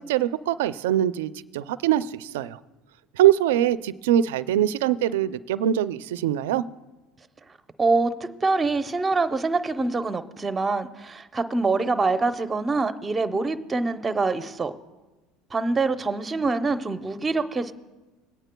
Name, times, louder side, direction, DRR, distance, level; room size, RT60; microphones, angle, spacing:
voice 1, 0.0-2.6 3.2-6.6, right 11 dB, 90° right, 15 dB, 0.4 m, -23 dB
voice 2, 7.8-8.1 8.4-14.7 15.5-17.7, right 3 dB, 20° right, 10 dB, 0.7 m, -25 dB
23.0 x 9.0 x 2.2 m, 1.1 s
supercardioid pair, 105°, 0 cm